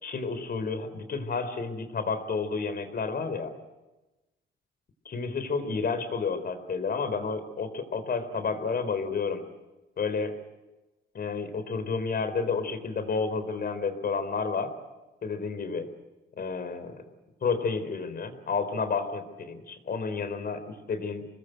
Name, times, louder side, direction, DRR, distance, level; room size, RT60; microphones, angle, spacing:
voice 1, 0.0-3.5 5.0-9.4 10.0-10.3 11.1-14.7 15.2-15.9 16.4-17.0 17.4-21.3, left 4 dB, 50° left, 9 dB, 4.1 m, -30 dB
26.0 x 20.0 x 8.0 m, 1.1 s
cardioid pair, 90°, 20 cm